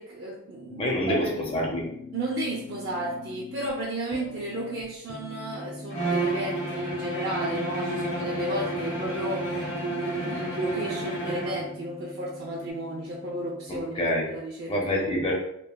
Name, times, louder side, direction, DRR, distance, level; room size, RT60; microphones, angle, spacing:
voice 1, 0.0-0.9 1.3-1.4 2.1-14.0 14.3-14.9, right 1 dB, 50° right, -5 dB, 0.4 m, -33 dB
sound 1, 0.7-13.8, left 3 dB, 85° left, 0.5 m, -42 dB
voice 2, 0.8-1.9 13.7-14.3 14.7-15.3, equal, 25° left, -2 dB, 0.5 m, -27 dB
Bowed string instrument, 5.9-11.7, right 2 dB, 70° left, 1.2 m, -30 dB
3.1 x 2.2 x 2.2 m, 0.75 s
head